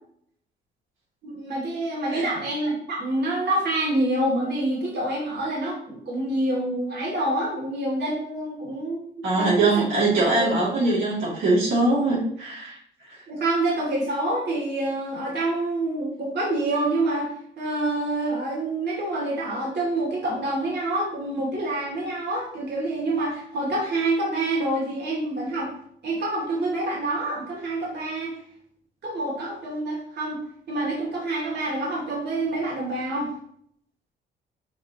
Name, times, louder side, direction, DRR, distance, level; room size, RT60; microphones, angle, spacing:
voice 1, 1.2-9.1 9.3-9.7 10.4-10.5 13.3-25.7 26.0-28.3 29.0-30.4 30.7-33.3, right 2 dB, 55° right, -4 dB, 2.9 m, -27 dB
voice 2, 9.2-12.8 13.1-13.2, right 2 dB, 80° right, -7 dB, 2.9 m, -22 dB
7.2 x 5.0 x 3.1 m, 0.67 s
cardioid pair, 90°, 20 cm